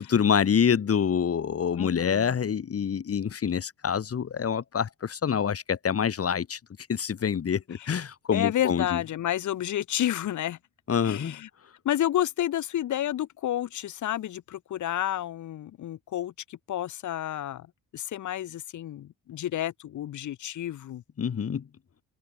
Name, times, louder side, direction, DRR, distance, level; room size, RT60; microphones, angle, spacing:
voice 1, 0.1-6.6 6.9-9.0 10.9-11.4 21.2-21.7, left 7 dB, 50° left, 7.7 m, -26 dB
voice 2, 1.7-2.4 8.3-10.6 11.0-11.5 11.8-17.7 17.9-21.0, left 12 dB, 75° left, 4.4 m, -30 dB
open air
cardioid pair, 90°, 30 cm